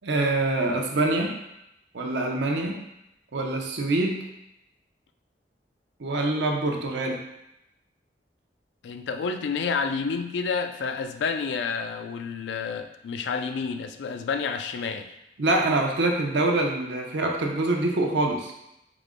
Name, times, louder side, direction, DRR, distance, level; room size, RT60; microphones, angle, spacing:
voice 1, 0.0-1.4 1.9-2.8 3.3-4.2 6.0-7.2 15.4-18.5, right 2 dB, 75° right, 2 dB, 0.6 m, -25 dB
voice 2, 8.8-15.1, left 5 dB, 75° left, 8 dB, 0.3 m, -29 dB
4.8 x 2.1 x 3.6 m, 0.85 s
head